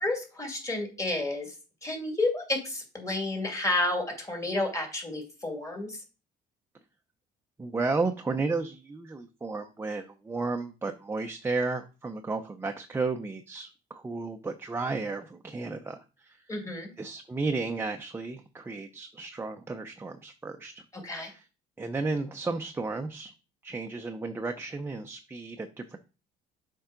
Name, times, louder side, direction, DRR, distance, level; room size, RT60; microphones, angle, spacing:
voice 1, 0.0-1.6 1.8-6.0 16.5-16.9 20.9-21.3, left 2 dB, 20° left, 3 dB, 2.2 m, -31 dB
voice 2, 7.6-16.5 17.0-20.8 21.2-21.5 21.8-23.3 23.6-26.0, right 3 dB, 15° right, 4 dB, 0.5 m, -33 dB
7.0 x 4.5 x 3.8 m, 0.32 s
cardioid pair, 110°, 17 cm